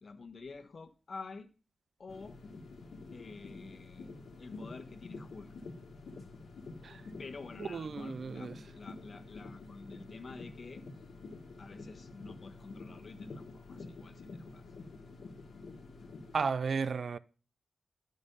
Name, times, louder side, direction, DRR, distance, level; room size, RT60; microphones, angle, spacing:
voice 1, 0.0-1.5 2.0-2.4 3.1-5.5 7.2-10.8 11.6-14.6, left 4 dB, 55° left, 1.2 m, -49 dB
sound 1, 2.1-16.5, left 3 dB, 85° left, 1.4 m, -48 dB
voice 2, 7.6-8.5 16.3-17.2, right 5 dB, 65° right, 0.4 m, -34 dB
11.5 x 5.3 x 5.4 m
wide cardioid pair, 115°, 0 cm